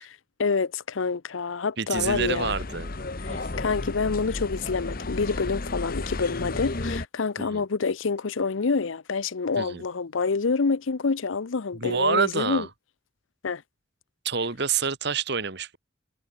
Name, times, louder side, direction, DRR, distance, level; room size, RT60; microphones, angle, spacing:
voice 1, 0.4-2.5 3.2-12.7 13.4-13.6, left 4 dB, 75° left, 0.7 m, -27 dB
voice 2, 1.8-2.9 3.3-3.4 7.4-7.6 9.6-9.8 11.7-12.7 14.3-15.8, right 5 dB, 55° right, 1.7 m, -27 dB
sound 1, 1.9-7.0, left 2 dB, 45° left, 1.1 m, -33 dB
head